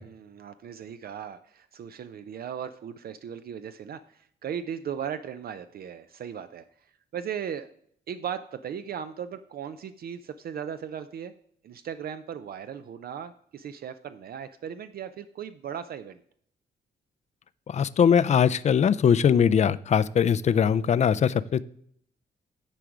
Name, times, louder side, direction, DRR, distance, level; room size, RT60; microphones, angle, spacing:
voice 1, 0.0-7.7 8.1-11.3 11.6-16.2, right 8 dB, 60° right, 11 dB, 0.4 m, -37 dB
voice 2, 17.7-21.6, left 7 dB, 40° left, 16 dB, 0.4 m, -21 dB
10.0 x 4.6 x 4.9 m, 0.66 s
cardioid pair, 95°, 18 cm